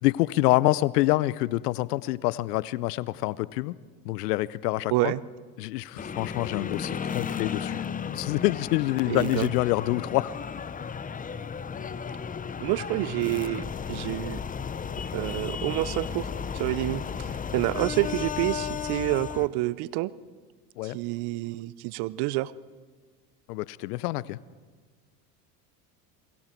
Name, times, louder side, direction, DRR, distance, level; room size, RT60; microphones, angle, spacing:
voice 1, 0.0-3.7 4.0-5.1 5.6-7.9 8.1-10.3 20.8-21.0 23.5-24.4, left 18 dB, 70° left, 20 dB, 0.8 m, -26 dB
voice 2, 4.9-5.2 9.1-9.5 12.6-14.4 15.1-16.3 16.5-20.1 20.8-22.5, right 18 dB, 55° right, 19 dB, 0.8 m, -28 dB
sound 1, 6.0-19.5, left 7 dB, 15° left, 0.7 m, -34 dB
29.0 x 21.5 x 4.6 m, 1.5 s
hypercardioid pair, 85°, 49 cm